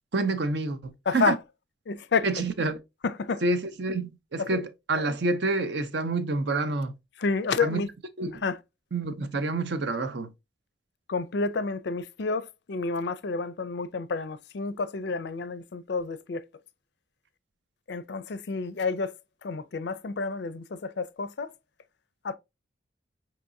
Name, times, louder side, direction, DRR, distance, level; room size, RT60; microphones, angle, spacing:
voice 1, 0.1-1.3 2.2-2.8 3.4-6.9 7.6-7.8 8.2-8.4 8.9-10.3, right 2 dB, 60° right, 0.6 m, -28 dB
voice 2, 1.1-1.4 1.9-2.3 3.0-3.4 4.4-4.6 7.2-7.9 8.4-8.6 11.1-16.4 17.9-19.1 19.4-21.5 22.2-22.4, left 4 dB, 60° left, 0.4 m, -29 dB
5.7 x 2.9 x 2.6 m
head